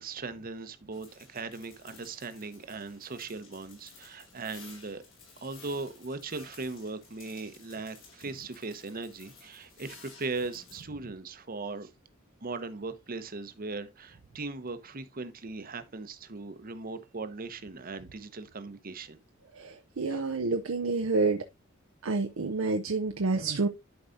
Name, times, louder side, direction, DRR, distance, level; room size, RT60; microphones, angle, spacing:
voice 1, 0.0-5.0 5.4-11.9 12.4-19.2 20.1-20.2, right 3 dB, 45° right, 0.9 m, -39 dB
sound 1, 0.9-10.8, left 5 dB, 85° left, 5.2 m, -54 dB
voice 2, 19.5-21.4 22.0-23.7, right 3 dB, 80° right, 0.6 m, -28 dB
11.5 x 4.8 x 2.6 m
head